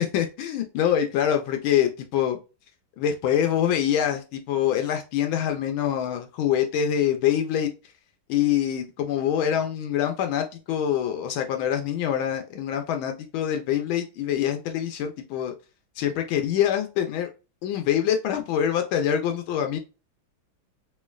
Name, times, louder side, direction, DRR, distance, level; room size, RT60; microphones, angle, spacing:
voice 1, 0.0-2.4 3.0-7.7 8.3-15.5 16.0-17.3 17.6-19.8, left 10 dB, 80° left, 5 dB, 1.4 m, -25 dB
3.8 x 3.1 x 2.3 m, 0.30 s
omnidirectional pair, 2.2 m